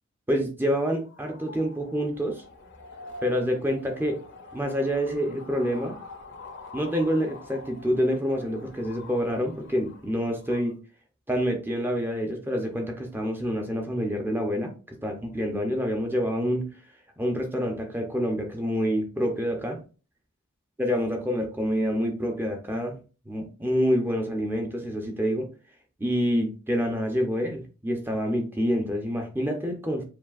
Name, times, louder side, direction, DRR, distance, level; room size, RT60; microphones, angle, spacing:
voice 1, 0.3-2.4 3.2-4.2 4.5-6.0 6.7-10.8 11.3-16.7 17.2-19.8 20.8-23.0 23.3-25.5 26.0-30.0, equal, 10° right, 2 dB, 0.6 m, -27 dB
sound 1, 1.0-10.7, left 3 dB, 55° left, 0.8 m, -46 dB
7.3 x 2.7 x 2.4 m, 0.35 s
head